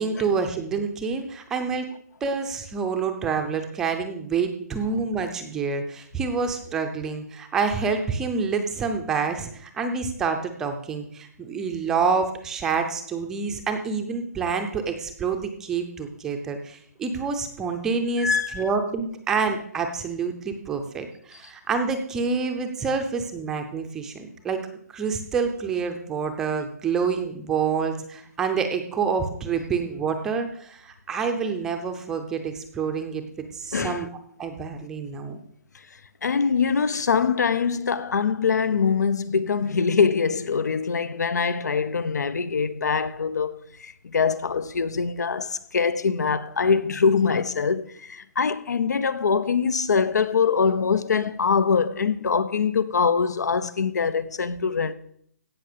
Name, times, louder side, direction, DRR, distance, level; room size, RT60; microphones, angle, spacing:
voice 1, 0.0-1.9 2.2-24.6 24.9-33.2 33.5-34.1 34.4-35.4, right 5 dB, 5° right, 0.5 m, -27 dB
voice 2, 18.2-18.6 33.7-34.1 36.2-54.9, left 5 dB, 90° left, 0.9 m, -23 dB
16.5 x 5.9 x 6.7 m
hypercardioid pair, 175°, 9 cm